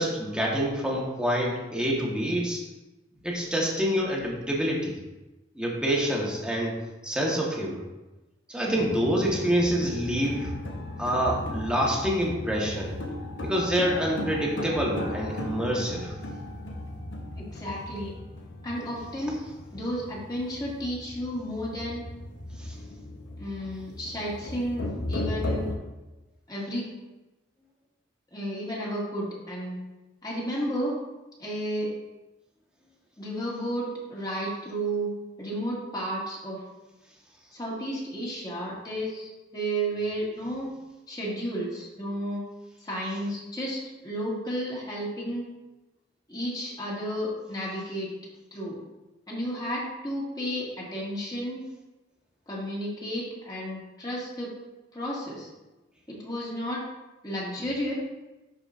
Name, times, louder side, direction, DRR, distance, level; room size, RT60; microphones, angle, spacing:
voice 1, 0.0-2.6 3.2-4.9 5.5-7.8 8.5-10.5 11.0-13.0 13.4-16.1 22.6-22.7, equal, 5° right, -3 dB, 1.3 m, -27 dB
sound 1, 8.7-25.7, left 1 dB, 80° left, 1.0 m, -36 dB
voice 2, 17.3-18.1 18.6-19.4 19.7-22.0 23.4-25.7 26.5-26.9 28.3-29.8 30.2-30.9 31.4-31.9 33.2-35.1 35.4-36.6 37.5-40.7 41.1-42.4 42.8-45.5 46.3-48.1 48.5-48.8 49.3-51.6 52.5-54.5 54.9-55.5 56.1-56.8 57.2-57.9, equal, 20° left, -6 dB, 2.0 m, -32 dB
11.0 x 4.9 x 2.5 m, 1.1 s
head